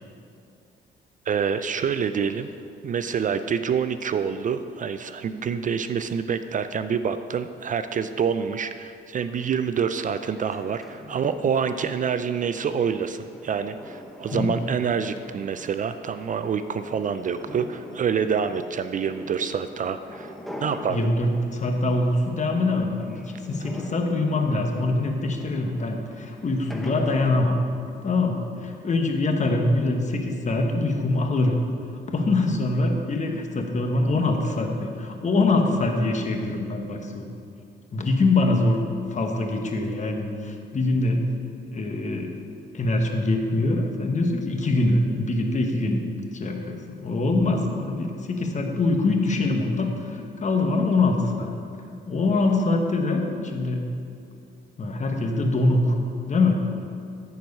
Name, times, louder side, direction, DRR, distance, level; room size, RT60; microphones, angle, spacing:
voice 1, 1.3-2.5 2.8-20.3 20.6-21.1, right 7 dB, 40° right, 11 dB, 0.4 m, -27 dB
sound 1, 9.2-27.4, left 1 dB, ahead, 1.0 m, -43 dB
voice 2, 20.9-27.5 28.0-31.6 32.1-37.3 37.9-41.3 41.7-42.3 42.7-46.0 46.3-51.5 52.1-53.9 54.8-56.0 56.3-56.6, left 2 dB, 35° left, 3 dB, 1.2 m, -24 dB
14.0 x 4.7 x 5.4 m, 2.4 s
cardioid pair, 90°, 20 cm